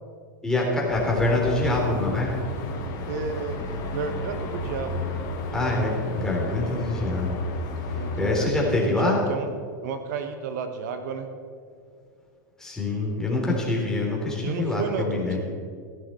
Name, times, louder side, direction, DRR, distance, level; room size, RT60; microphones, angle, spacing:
voice 1, 0.4-2.3 5.5-7.4 8.2-9.2 12.6-15.4, left 2 dB, 5° left, -3 dB, 3.7 m, -25 dB
sound 1, 0.9-8.4, left 2 dB, 50° left, 3.0 m, -32 dB
voice 2, 3.1-5.2 7.9-9.5 9.8-11.3 14.4-15.4, right 5 dB, 65° right, 8 dB, 1.2 m, -32 dB
15.5 x 11.5 x 4.4 m, 2.2 s
hypercardioid pair, 120°, 10 cm